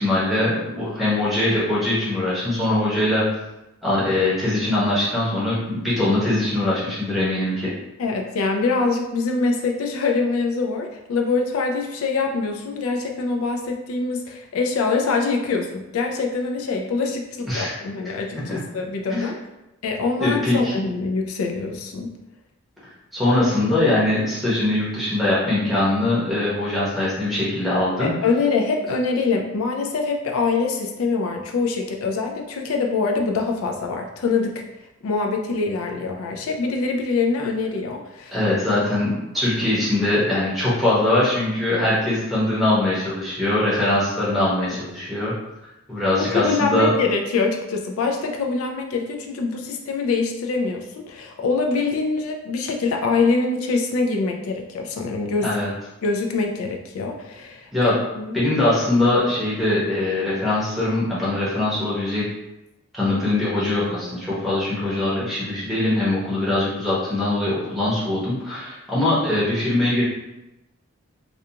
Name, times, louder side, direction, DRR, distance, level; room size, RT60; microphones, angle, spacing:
voice 1, 0.0-3.2 3.8-7.7 17.5-17.7 18.5-18.6 19.1-19.3 20.2-20.7 23.1-28.1 38.3-45.3 45.9-46.9 55.4-55.7 57.7-58.0 58.3-62.2 62.9-70.0, left 1 dB, ahead, -9 dB, 0.8 m, -22 dB
voice 2, 8.0-19.4 19.8-22.1 28.0-34.6 35.0-38.4 44.6-44.8 46.2-55.5 56.0-58.4, left 4 dB, 85° left, 2 dB, 0.4 m, -24 dB
2.4 x 2.3 x 2.7 m, 0.95 s
head